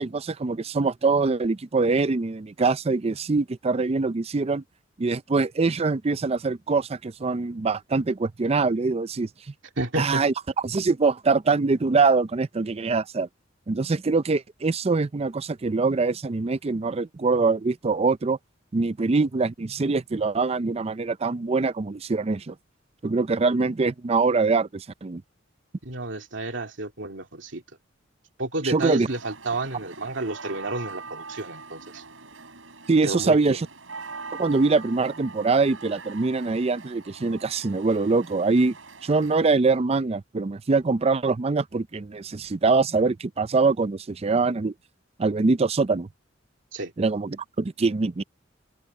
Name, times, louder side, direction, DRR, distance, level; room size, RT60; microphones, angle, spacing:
voice 1, 0.0-4.6 5.0-9.3 10.0-10.3 10.6-13.3 13.7-18.4 18.7-22.6 23.0-25.2 28.6-29.1 32.9-33.7 34.3-38.8 39.0-44.7 45.2-46.1 47.0-48.2, right 4 dB, 30° right, 0.5 m, -23 dB
voice 2, 9.8-10.2 25.8-27.6 28.4-32.0 33.0-33.6 46.7-46.9, right 2 dB, 70° right, 2.6 m, -31 dB
sound 1, 29.1-39.4, right 4 dB, 90° right, 6.1 m, -42 dB
head